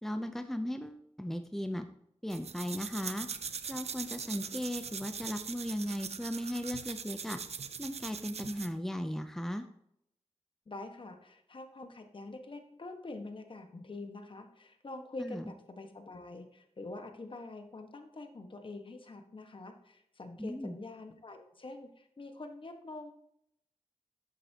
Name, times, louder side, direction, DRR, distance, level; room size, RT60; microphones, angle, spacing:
voice 1, 0.0-1.9 2.2-3.3 3.7-7.4 7.8-9.7 15.2-15.5 20.4-20.8, equal, 5° left, 8 dB, 0.6 m, -37 dB
sound 1, 2.3-8.8, right 6 dB, 70° right, 0.6 m, -41 dB
voice 2, 10.7-23.1, left 2 dB, 50° left, 6 dB, 1.5 m, -45 dB
11.0 x 8.4 x 2.9 m, 0.76 s
wide cardioid pair, 85°, 11 cm